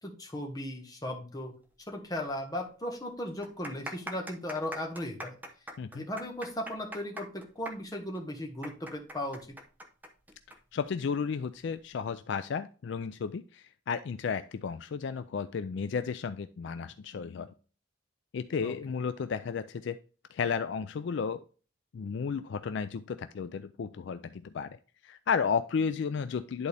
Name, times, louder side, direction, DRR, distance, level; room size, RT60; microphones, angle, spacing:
voice 1, 0.0-1.5 1.9-5.4 5.9-9.5 18.6-18.7, left 1 dB, 20° left, 1 dB, 1.4 m, -37 dB
sound 1, 2.2-2.3 2.6-2.7 3.3-10.6 10.8-10.9 11.7-12.0, right 1 dB, 10° right, 0.8 m, -42 dB
voice 2, 10.7-17.5 18.3-20.0 20.3-21.4 21.9-24.7 25.0-26.7, left 6 dB, 60° left, 11 dB, 0.3 m, -33 dB
10.5 x 4.0 x 3.3 m, 0.38 s
head